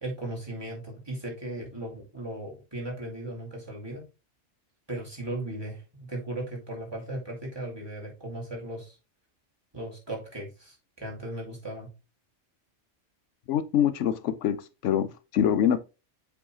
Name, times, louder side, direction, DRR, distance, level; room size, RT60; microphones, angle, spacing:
voice 1, 0.0-4.0 4.9-9.0 9.7-11.9, right 1 dB, 20° right, 2.3 m, -37 dB
voice 2, 13.5-14.6 14.8-15.8, left 9 dB, 80° left, 0.9 m, -24 dB
7.3 x 4.7 x 2.9 m
omnidirectional pair, 1.2 m